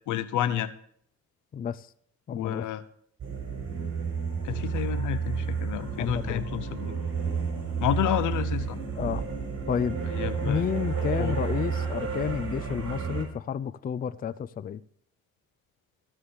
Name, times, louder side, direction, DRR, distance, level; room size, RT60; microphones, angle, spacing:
voice 1, 0.1-0.7 2.3-2.8 4.4-7.0 7.8-8.8 10.1-10.6 11.2-11.3, left 11 dB, 80° left, 0.9 m, -30 dB
voice 2, 1.5-1.9 2.3-2.7 5.9-6.4 9.0-9.2 9.7-10.0 10.4-14.8, left 8 dB, 30° left, 0.4 m, -31 dB
sound 1, 3.2-13.3, right 6 dB, 45° right, 4.7 m, -31 dB
14.5 x 4.9 x 7.2 m
cardioid pair, 90°, 30 cm